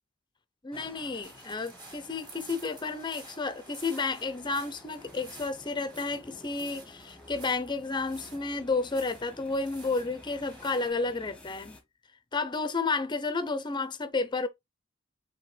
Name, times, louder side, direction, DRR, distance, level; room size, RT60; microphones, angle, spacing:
voice 1, 0.6-11.8 12.3-14.5, left 3 dB, 25° left, 0.6 m, -31 dB
sound 1, 0.7-11.8, left 1 dB, 5° left, 1.1 m, -53 dB
sound 2, 1.2-10.9, right 2 dB, 25° right, 2.5 m, -51 dB
5.6 x 2.8 x 3.2 m
head